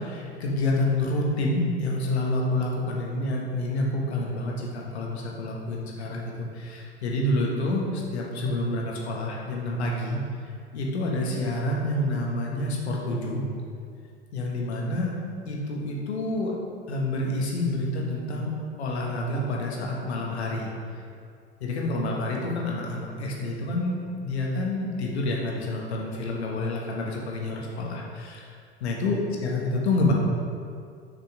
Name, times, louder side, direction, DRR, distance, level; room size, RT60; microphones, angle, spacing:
voice 1, 0.0-10.2 10.7-13.4 14.3-15.2 15.4-16.6 16.9-18.5 18.8-20.7 21.6-28.5 28.8-30.1, left 2 dB, 75° left, -2 dB, 1.4 m, -28 dB
7.3 x 5.9 x 3.5 m, 2.3 s
figure-of-eight pair, 75°, 33 cm